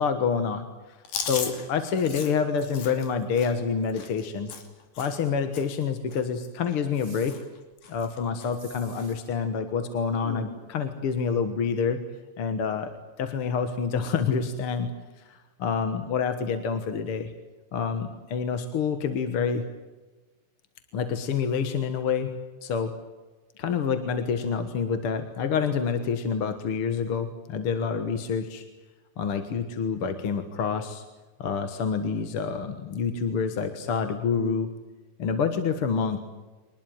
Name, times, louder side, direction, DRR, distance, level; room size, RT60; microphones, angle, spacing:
voice 1, 0.0-4.5 5.0-7.4 7.9-12.0 12.4-14.9 15.2-17.3 17.7-19.6 20.9-23.0 23.6-28.7 29.2-31.0 31.4-34.7 35.2-36.2, left 6 dB, 55° left, 9 dB, 2.0 m, -27 dB
Chewing mastication, 1.0-5.3 5.5-5.8 6.1-7.0 7.3-7.6 7.8-8.5 8.9-9.1 10.1-10.5, left 6 dB, 80° left, 4.3 m, -37 dB
sound 1, 6.9-7.4 8.5-9.2, right 2 dB, 35° right, 6.6 m, -50 dB
24.5 x 20.0 x 9.2 m, 1.2 s
omnidirectional pair, 3.6 m